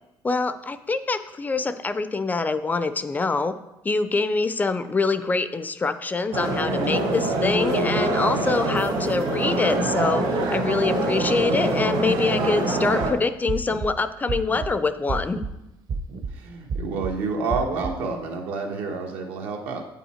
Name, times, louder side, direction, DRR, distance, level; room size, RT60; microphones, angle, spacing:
voice 1, 0.2-3.5 3.8-10.2 10.5-15.4, left 3 dB, 20° left, 12 dB, 0.3 m, -25 dB
sound 1, 6.3-13.1, right 2 dB, 65° right, 1.7 m, -24 dB
sound 2, 12.9-13.1 13.5-13.9 14.3-14.7 15.1-15.5 15.9-16.3 16.7-17.1 17.5-17.9, right 5 dB, 45° right, 0.7 m, -30 dB
voice 2, 16.3-19.9, right 4 dB, 90° right, 2 dB, 1.3 m, -29 dB
8.5 x 5.5 x 4.3 m, 0.93 s
cardioid pair, 130°, 9 cm